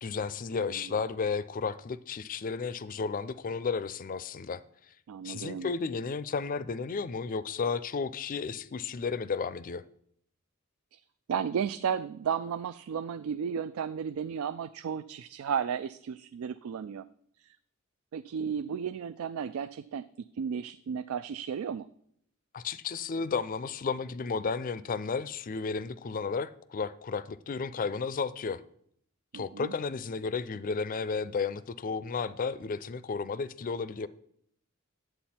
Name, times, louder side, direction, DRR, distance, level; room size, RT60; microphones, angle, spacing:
voice 1, 0.0-4.6 5.2-9.8 22.5-28.6 29.3-34.1, left 5 dB, 40° left, 0.4 m, -33 dB
voice 2, 0.5-0.9 5.1-5.7 10.9-11.0 11.3-17.1 17.4-17.6 18.1-20.1 20.3-21.9 29.3-29.7, right 7 dB, 80° right, 0.3 m, -34 dB
10.0 x 7.9 x 4.3 m
head